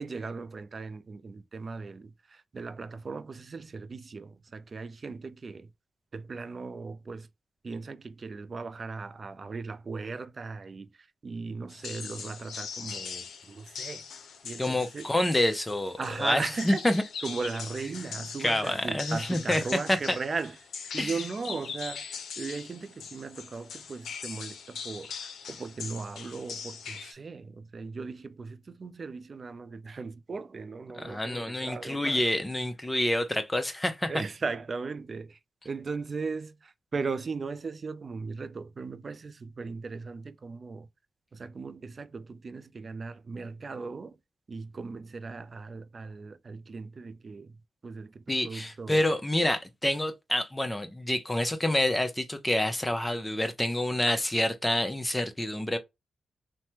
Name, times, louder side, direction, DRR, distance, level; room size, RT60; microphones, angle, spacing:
voice 1, 0.0-5.7 6.1-7.3 7.6-14.0 14.4-15.1 16.0-16.8 17.2-20.6 20.9-22.1 22.4-32.2 34.1-35.4 35.6-40.9 41.3-44.2 44.5-47.6 47.8-49.1, right 4 dB, 45° right, 0.4 m, -37 dB
sound 1, 11.7-27.1, left 6 dB, 80° left, 0.5 m, -41 dB
voice 2, 14.6-17.0 18.4-19.6 19.9-20.2 21.0-21.1 31.0-34.1 48.3-55.8, left 1 dB, 15° left, 0.6 m, -28 dB
3.2 x 2.1 x 2.8 m
cardioid pair, 80°, 0 cm